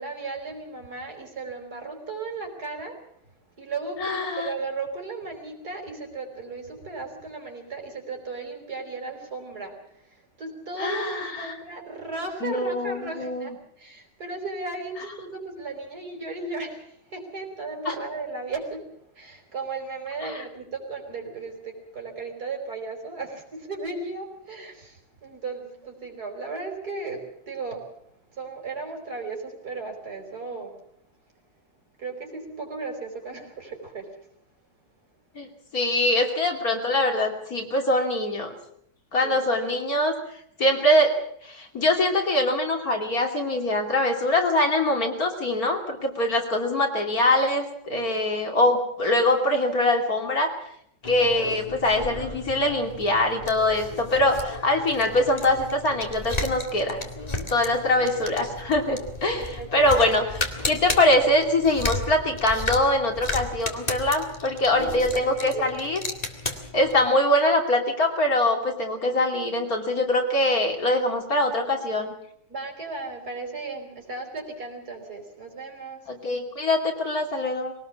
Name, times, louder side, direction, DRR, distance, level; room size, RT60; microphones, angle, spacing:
voice 1, 0.0-3.0 3.6-9.7 10.4-18.8 19.2-27.2 27.5-27.8 28.3-30.7 32.0-34.2 39.2-39.5 59.3-60.2 64.7-65.8 72.5-76.0, right 3 dB, 55° right, 3 dB, 5.3 m, -35 dB
voice 2, 4.0-4.5 10.8-11.5 12.4-13.5 17.8-17.9 20.2-20.4 35.3-38.5 39.1-40.1 40.6-41.1 41.4-50.5 51.0-57.0 57.5-66.0 66.7-72.1 76.1-77.7, left 1 dB, 50° left, 3 dB, 3.3 m, -23 dB
sound 1, 51.0-67.1, left 2 dB, 20° left, 2.2 m, -34 dB
22.5 x 18.5 x 7.3 m, 0.71 s
omnidirectional pair, 2.0 m